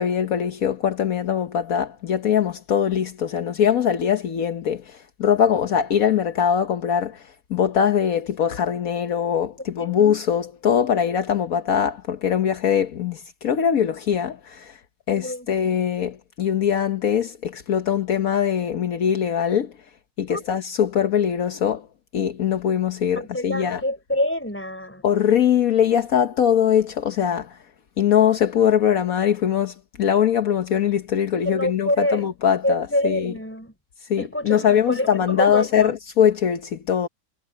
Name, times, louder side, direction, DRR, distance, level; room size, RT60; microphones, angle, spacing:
voice 1, 0.0-7.2 7.5-14.8 15.1-19.7 20.2-21.9 22.1-23.8 25.0-27.6 28.0-33.3 34.1-37.1, left 8 dB, 70° left, 1.4 m, -22 dB
voice 2, 15.1-15.5 20.3-20.4 23.2-25.0 31.4-32.3 32.6-33.7 34.2-35.9, left 1 dB, 10° left, 4.0 m, -26 dB
omnidirectional pair, 1.6 m